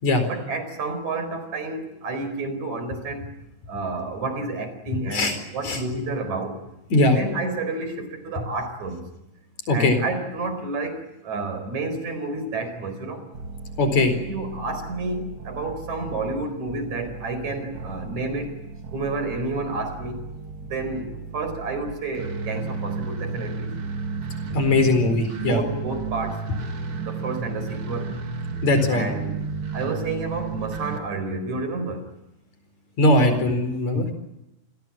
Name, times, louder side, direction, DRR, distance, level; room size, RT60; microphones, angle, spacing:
voice 1, 0.3-3.3 3.7-6.6 7.1-9.0 9.7-13.3 14.0-18.6 18.9-20.2 20.6-23.7 25.5-26.5 27.0-28.1 28.9-29.4 29.7-32.1, right 3 dB, 75° right, 9 dB, 5.8 m, -30 dB
voice 2, 9.7-10.0 13.8-14.1 24.5-25.6 28.6-29.1 33.0-34.1, left 2 dB, 70° left, 8 dB, 5.7 m, -20 dB
sound 1, 13.3-31.0, right 4 dB, 50° right, 2.7 m, -33 dB
29.0 x 21.0 x 8.6 m, 0.92 s
omnidirectional pair, 3.3 m